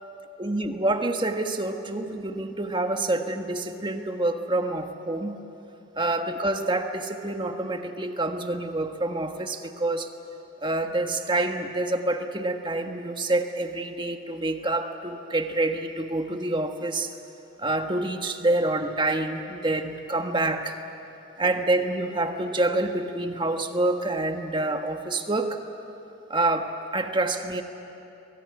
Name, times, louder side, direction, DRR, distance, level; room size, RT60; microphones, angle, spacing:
voice 1, 0.4-5.3 6.0-10.1 10.6-17.1 17.6-20.8 21.4-25.6 26.3-27.6, right 2 dB, 25° right, 5 dB, 1.4 m, -27 dB
24.0 x 20.5 x 9.7 m, 2.9 s
head